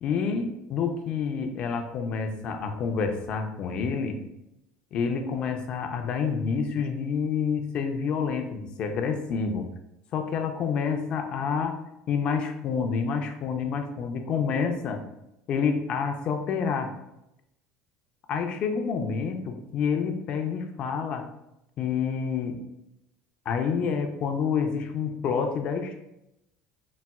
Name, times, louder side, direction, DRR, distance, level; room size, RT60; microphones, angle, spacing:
voice 1, 0.0-4.2 4.9-9.7 10.1-11.8 12.1-15.0 15.5-16.9 18.3-21.2 21.8-22.6 23.5-26.0, left 6 dB, 50° left, 5 dB, 0.5 m, -28 dB
4.0 x 2.0 x 2.3 m, 0.86 s
supercardioid pair, 95°, 2 cm